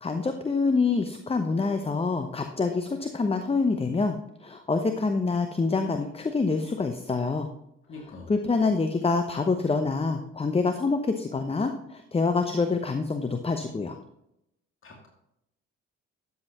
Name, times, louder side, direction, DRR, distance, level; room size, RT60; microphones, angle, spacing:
voice 1, 0.0-7.5 8.3-14.0, left 4 dB, 15° left, 8 dB, 0.9 m, -26 dB
voice 2, 7.9-8.3 14.8-15.1, left 3 dB, 35° left, 0 dB, 2.5 m, -43 dB
13.0 x 8.1 x 3.0 m, 0.81 s
figure-of-eight pair, 45°, 36 cm